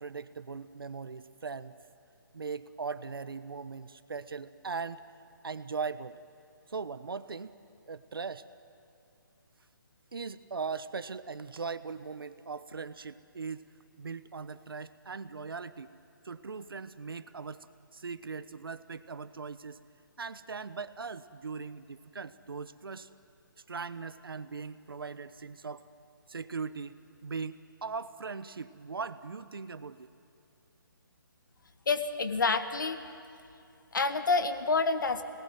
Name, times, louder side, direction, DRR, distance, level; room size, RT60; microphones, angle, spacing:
voice 1, 0.0-1.7 2.3-5.0 5.4-6.2 6.7-7.5 7.9-8.4 10.1-13.6 14.0-15.9 16.2-17.6 17.9-19.8 20.2-23.1 23.7-25.8 26.3-26.9 27.2-30.1, right 5 dB, 85° right, 13 dB, 1.1 m, -39 dB
voice 2, 31.9-33.0 33.9-35.2, left 4 dB, 60° left, 9 dB, 1.8 m, -28 dB
26.0 x 19.5 x 9.3 m, 2.5 s
hypercardioid pair, 175°, 12 cm